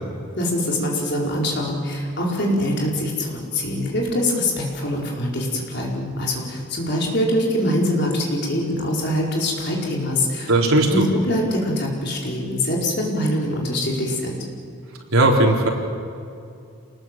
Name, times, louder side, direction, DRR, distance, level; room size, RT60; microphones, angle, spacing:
voice 1, 0.4-10.5 10.9-14.4, left 1 dB, 50° left, -2 dB, 4.8 m, -23 dB
voice 2, 10.5-11.1 15.1-15.7, right 2 dB, 85° right, 0 dB, 3.9 m, -17 dB
27.5 x 20.0 x 7.6 m, 2.5 s
head